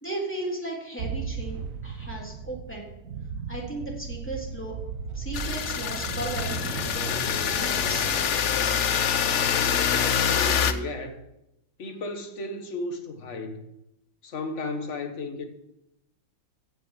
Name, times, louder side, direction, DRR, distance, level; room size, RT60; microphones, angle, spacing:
voice 1, 0.0-2.9 3.5-4.7 5.1-8.1, right 1 dB, 5° left, 3.4 m, -36 dB
sound 1, 1.0-8.3, right 6 dB, 60° right, 0.9 m, -36 dB
sound 2, 5.3-10.7, left 8 dB, 60° left, 0.8 m, -25 dB
voice 2, 9.6-11.2 11.8-13.6 14.2-15.4, left 2 dB, 40° left, 1.6 m, -34 dB
15.5 x 6.6 x 7.3 m
omnidirectional pair, 2.0 m